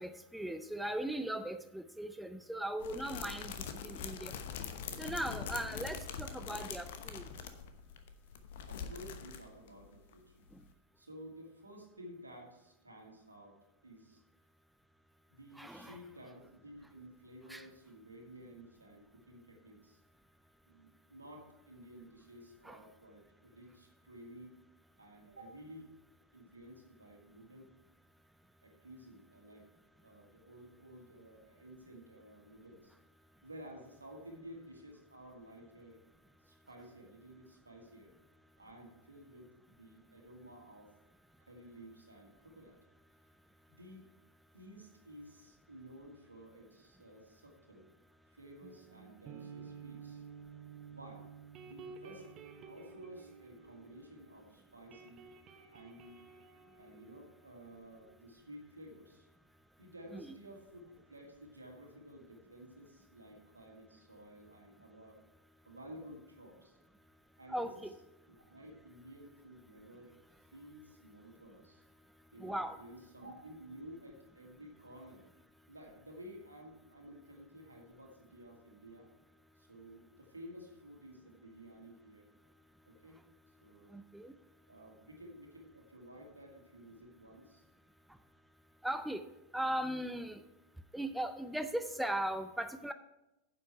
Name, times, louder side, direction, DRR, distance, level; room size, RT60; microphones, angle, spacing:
voice 1, 0.0-3.6 3.8-4.3 5.0-7.2 15.6-16.0 17.5-17.7 22.6-22.8 60.1-60.3 67.5-67.9 72.4-72.8 83.9-84.3 88.8-89.2 89.5-90.4 90.9-92.9, right 1 dB, 5° right, 9 dB, 0.5 m, -38 dB
sound 1, 2.8-9.9 10.1-10.2 10.5-10.6, left 7 dB, 55° left, 0.9 m, -43 dB
voice 2, 8.7-10.5 11.0-13.6 13.8-14.2 15.3-20.0 20.7-24.6 25.0-25.9 26.3-27.7 28.6-29.7 30.0-32.9 33.4-36.0 36.4-38.1 38.6-40.9 41.4-42.8 43.7-44.1 44.5-47.9 48.3-50.2 50.9-51.3 51.6-52.3 52.7-55.3 55.7-56.3 56.8-59.3 59.8-65.2 65.6-66.8 67.4-67.7 68.3-70.2 70.5-71.8 72.3-75.3 75.7-79.1 79.6-82.3 82.9-83.2 83.6-84.0 84.7-87.6, equal, 80° right, 1 dB, 2.2 m, -53 dB
sound 2, 48.6-54.4 54.7-58.1, right 6 dB, 35° right, 0.9 m, -52 dB
9.8 x 7.6 x 4.7 m, 0.95 s
figure-of-eight pair, 90°, 0 cm